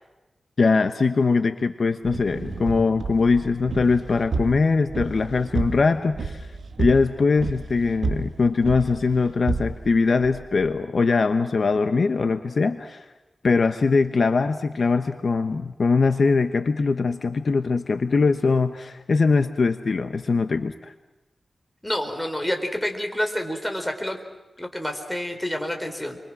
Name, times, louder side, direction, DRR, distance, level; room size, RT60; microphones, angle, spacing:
voice 1, 0.6-6.5 6.8-13.0 13.4-20.9, left 4 dB, 60° left, 8 dB, 1.0 m, -21 dB
sound 1, 2.0-10.7, right 3 dB, 75° right, 2.5 m, -31 dB
voice 2, 21.8-24.2 24.6-26.2, left 1 dB, 10° left, 5 dB, 4.2 m, -28 dB
29.5 x 24.0 x 6.1 m, 1.0 s
wide cardioid pair, 85°, 0 cm